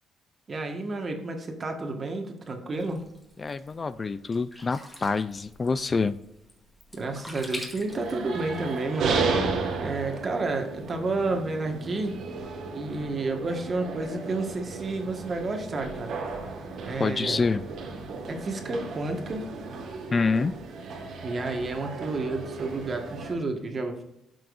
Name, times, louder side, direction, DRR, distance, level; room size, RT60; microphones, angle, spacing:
voice 1, 0.5-3.1 6.9-9.3 9.8-12.2 12.7-16.2 16.8-17.4 18.3-19.5 21.2-24.0, right 3 dB, 40° right, 4 dB, 1.5 m, -31 dB
Sink (filling or washing), 2.7-8.8, left 1 dB, 10° left, 2.0 m, -45 dB
voice 2, 3.4-6.1 17.0-17.6 20.1-20.5, left 4 dB, 35° left, 14 dB, 0.4 m, -26 dB
sound 1, 7.9-23.3, right 4 dB, 75° right, 1.6 m, -34 dB
12.0 x 6.1 x 2.6 m, 0.84 s
cardioid pair, 90°, 0 cm